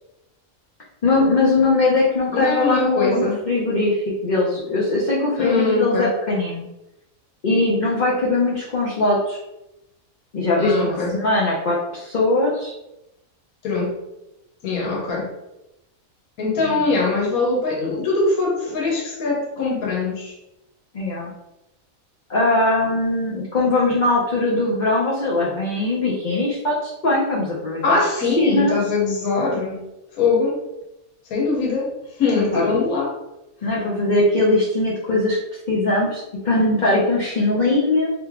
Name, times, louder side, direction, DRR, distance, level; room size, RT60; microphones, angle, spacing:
voice 1, 1.0-6.7 7.4-9.4 10.3-12.7 16.6-16.8 20.9-21.3 22.3-28.7 32.4-32.7 33.6-35.4 35.7-38.1, left 2 dB, 45° left, -5 dB, 0.6 m, -20 dB
voice 2, 2.3-3.4 5.4-6.1 10.6-11.1 13.6-13.9 14.6-15.3 16.4-20.3 27.8-29.8 30.1-30.6 31.3-33.2, left 3 dB, 80° left, -2 dB, 1.3 m, -22 dB
3.2 x 2.9 x 3.6 m, 0.92 s
omnidirectional pair, 1.5 m